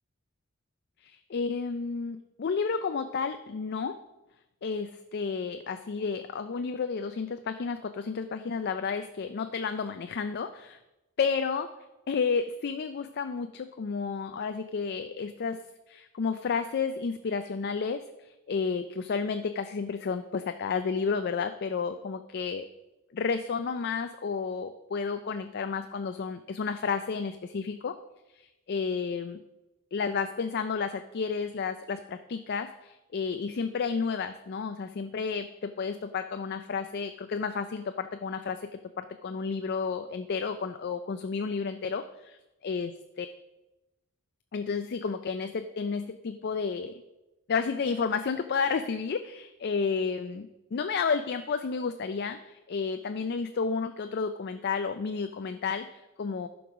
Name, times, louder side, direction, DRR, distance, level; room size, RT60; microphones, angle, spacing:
voice 1, 1.0-4.0 4.6-10.8 11.2-11.7 12.1-15.6 15.9-22.6 23.1-28.0 28.3-29.4 29.9-42.3 42.6-42.9 43.2-43.3 44.5-47.0 47.5-56.5, left 5 dB, 50° left, 9 dB, 0.4 m, -31 dB
11.5 x 4.7 x 6.0 m, 1.0 s
head